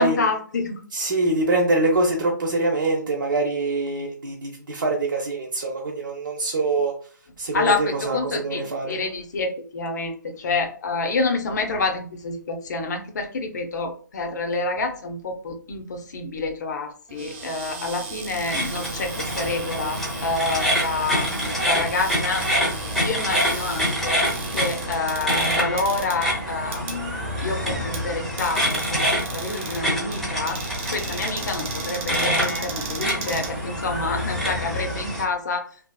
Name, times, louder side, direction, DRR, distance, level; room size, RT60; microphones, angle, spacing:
voice 1, 0.0-0.8 7.5-8.6 8.9-24.3 24.5-29.0 29.3-30.6 30.9-35.7, left 3 dB, 60° left, 4 dB, 0.6 m, -28 dB
voice 2, 0.9-6.9 7.4-8.9, right 2 dB, 80° right, -1 dB, 0.7 m, -24 dB
Cupboard open or close, 17.1-34.2, right 4 dB, 40° right, 0.8 m, -37 dB
sound 1, 18.4-35.2, equal, ahead, 0.7 m, -26 dB
2.7 x 2.5 x 2.2 m, 0.43 s
hypercardioid pair, 150°, 11 cm